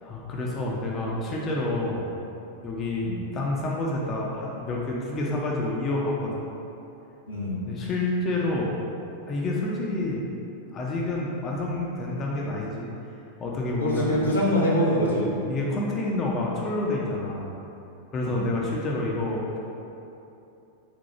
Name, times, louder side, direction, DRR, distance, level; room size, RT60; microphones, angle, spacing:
voice 1, 0.0-2.1 2.6-6.5 7.7-8.7 9.3-10.3 10.7-12.9 13.4-14.4 15.5-17.5 18.1-19.6, left 2 dB, 30° left, -3 dB, 0.5 m, -28 dB
voice 2, 7.3-7.6 13.8-15.3 18.2-18.4, equal, 80° left, -6 dB, 0.8 m, -24 dB
4.3 x 2.2 x 4.2 m, 2.8 s
figure-of-eight pair, 90°, 0 cm